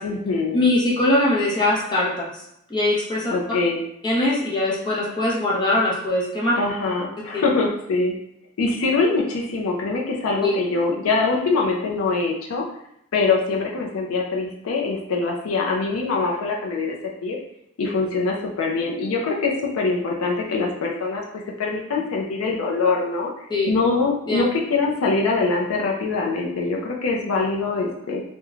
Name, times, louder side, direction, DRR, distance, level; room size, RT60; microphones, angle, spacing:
voice 1, 0.0-0.6 3.3-3.8 6.6-8.1 8.6-12.6 13.1-16.9 17.2-17.4 17.8-21.2 21.6-23.3 23.7-28.2, left 3 dB, 85° left, -1 dB, 0.4 m, -23 dB
voice 2, 0.5-2.4 2.7-3.3 4.0-6.6 7.3-7.5 10.4-10.6 23.5-23.7 24.3-24.4, left 1 dB, 20° left, -5 dB, 0.6 m, -21 dB
3.0 x 2.1 x 2.3 m, 0.75 s
head